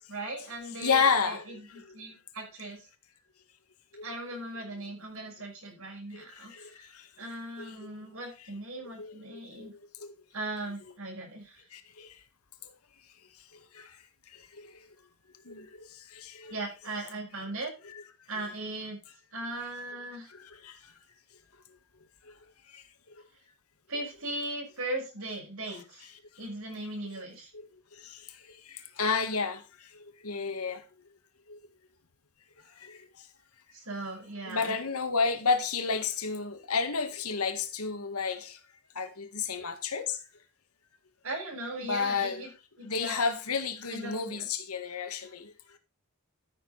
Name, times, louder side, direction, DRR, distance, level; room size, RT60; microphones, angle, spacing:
voice 1, 0.1-2.9 4.0-6.8 7.2-9.7 10.3-11.6 16.5-17.7 18.3-19.0 19.3-20.3 23.9-26.1 26.4-27.5 33.7-34.7 41.2-42.5 42.8-43.2 43.9-44.5, right 2 dB, 70° right, 5.9 m, -38 dB
voice 2, 0.8-1.4 1.7-2.0 3.9-4.1 6.1-7.1 7.6-7.9 9.0-9.7 10.0-10.1 11.7-12.2 13.7-14.0 14.3-14.8 15.5-16.5 17.8-18.0 20.3-20.8 22.3-22.4 22.7-22.8 25.7-25.8 27.5-27.7 28.0-29.9 30.2-30.8 31.5-31.6 32.8-33.0 34.5-38.6 39.0-40.2 41.8-42.5 42.8-45.5, left 5 dB, 85° left, 1.7 m, -32 dB
13.5 x 6.7 x 4.0 m
head